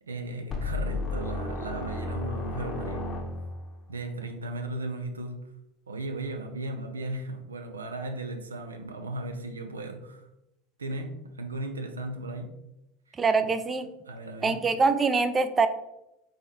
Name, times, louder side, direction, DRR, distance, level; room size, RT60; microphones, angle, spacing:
voice 1, 0.0-3.2 3.9-5.4 5.9-10.3 10.8-12.5 13.1-13.5 14.1-14.6, right 2 dB, 85° right, 6 dB, 0.5 m, -36 dB
sound 1, 0.5-3.8, left 3 dB, 30° left, 0.9 m, -33 dB
voice 2, 13.2-13.9 14.4-15.7, right 4 dB, 25° right, 10 dB, 0.4 m, -24 dB
4.1 x 3.8 x 3.1 m, 0.87 s
figure-of-eight pair, 75°, 0 cm